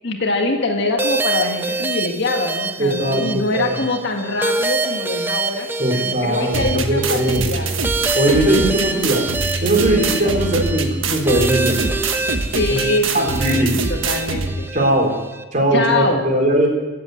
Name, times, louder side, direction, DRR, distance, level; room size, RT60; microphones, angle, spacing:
voice 1, 0.0-5.7 5.9-7.7 9.8-10.3 12.5-14.7 15.7-16.3, left 2 dB, 55° left, 3 dB, 1.8 m, -23 dB
sound 1, 1.0-15.4, right 3 dB, 10° right, 0.6 m, -26 dB
voice 2, 2.8-3.7 5.8-7.5 8.1-9.2 9.6-12.0 12.7-12.8 13.1-13.7 14.7-15.1 15.5-16.7, right 1 dB, 35° right, 0 dB, 3.6 m, -19 dB
sound 2, 6.5-14.5, right 4 dB, 70° right, 1.3 m, -24 dB
15.5 x 8.2 x 8.2 m, 1.2 s
head